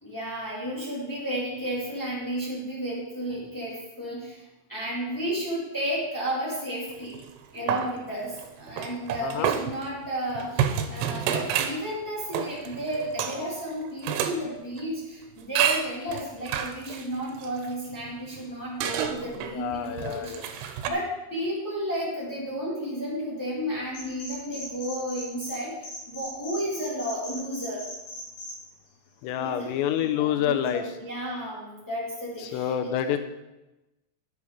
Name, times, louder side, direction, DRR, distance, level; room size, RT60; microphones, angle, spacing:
voice 1, 0.0-4.4 4.7-7.2 7.5-27.8 29.4-29.7 30.0-32.7, equal, 25° left, -8 dB, 0.4 m, -33 dB
sound 1, 7.0-7.4 7.7-14.4 14.8-14.9 15.6-18.4 18.8-20.9, right 9 dB, 90° right, 3.4 m, -29 dB
voice 2, 9.2-9.5 19.4-20.6 29.2-30.9 32.4-33.2, left 10 dB, 90° left, 7 dB, 3.5 m, -28 dB
sound 2, 23.9-25.6 25.8-28.5, left 1 dB, 65° left, 4.1 m, -38 dB
9.8 x 8.4 x 5.2 m, 1.0 s
omnidirectional pair, 5.8 m